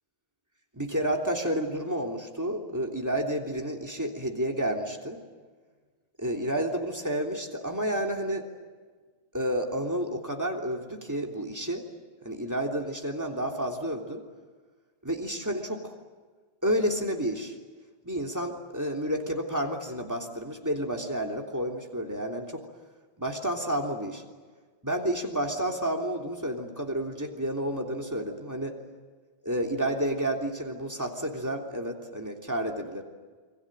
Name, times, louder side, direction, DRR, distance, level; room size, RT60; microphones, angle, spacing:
voice 1, 0.7-5.2 6.2-8.4 9.3-11.9 12.2-14.2 15.0-15.9 16.6-17.6 18.0-22.6 23.2-24.2 24.8-28.8 29.4-33.0, right 1 dB, 15° right, 1 dB, 3.3 m, -30 dB
29.0 x 22.5 x 9.0 m, 1.4 s
omnidirectional pair, 1.0 m